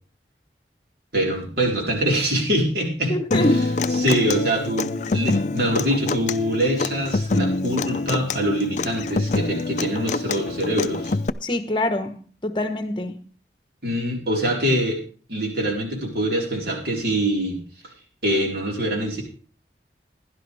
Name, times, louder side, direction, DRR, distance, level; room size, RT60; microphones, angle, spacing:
voice 1, 1.1-3.6 3.9-11.1 13.8-15.0 15.3-17.6 18.2-19.2, equal, 60° right, 4.2 m, -24 dB
voice 2, 3.1-3.6 11.4-13.2, left 1 dB, 25° left, 1.1 m, -25 dB
Human voice / Acoustic guitar, 3.3-11.3, left 3 dB, 40° left, 0.4 m, -25 dB
15.5 x 11.5 x 3.4 m
head